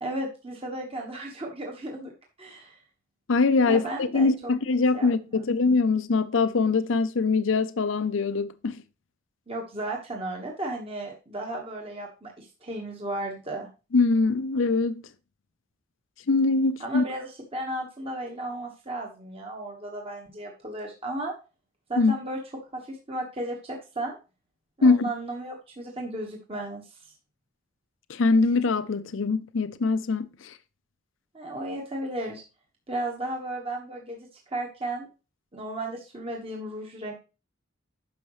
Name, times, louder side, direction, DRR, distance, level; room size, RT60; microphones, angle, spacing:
voice 1, 0.0-2.1 2.4-2.8 3.7-4.5 4.9-5.4 9.5-13.7 16.8-21.3 21.9-22.4 22.7-24.2 24.8-27.0 31.3-32.4 32.9-35.1 35.5-37.2, right 1 dB, 30° right, 1.4 m, -34 dB
voice 2, 3.3-8.8 13.9-15.0 16.3-17.0 22.0-22.1 24.8-25.0 28.1-30.6, left 3 dB, 70° left, 0.6 m, -23 dB
10.5 x 6.4 x 3.1 m
head